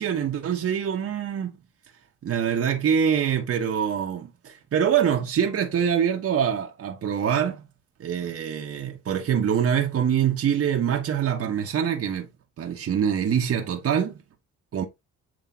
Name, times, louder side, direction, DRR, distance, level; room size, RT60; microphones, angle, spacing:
voice 1, 0.0-1.6 2.2-7.7 8.0-12.3 12.6-14.2 14.7-14.9, right 8 dB, 50° right, 1.1 m, -24 dB
7.7 x 3.1 x 4.0 m
cardioid pair, 90°, 30 cm